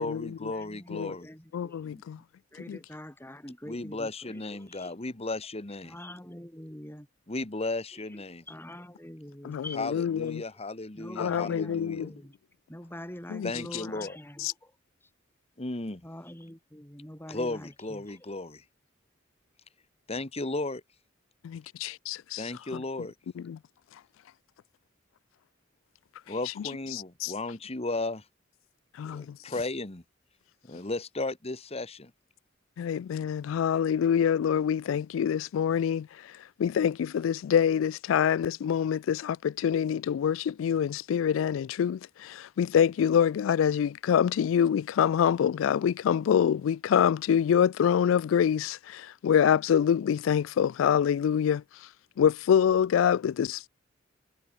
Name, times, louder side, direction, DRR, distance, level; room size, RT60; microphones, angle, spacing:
voice 1, 0.0-1.3 3.7-5.9 7.3-8.4 9.7-12.1 13.4-14.2 15.6-16.1 17.3-18.6 20.1-20.8 22.4-23.1 26.3-28.3 29.0-30.0 30.6-32.1, left 2 dB, 30° left, 1.5 m, -35 dB
voice 2, 0.5-2.0 2.5-4.9 5.8-7.1 8.1-9.8 10.9-12.3 12.7-14.8 15.0-15.1 16.0-18.3, left 1 dB, 10° left, 4.9 m, -45 dB
voice 3, 1.5-2.2 2.7-2.8 9.4-9.6 9.9-10.4 11.2-12.1 13.3-13.5 21.4-22.4 23.5-23.6 27.2-27.3 29.0-29.4 32.8-36.1 36.6-51.6 52.2-53.7, left 8 dB, 85° left, 0.3 m, -25 dB
head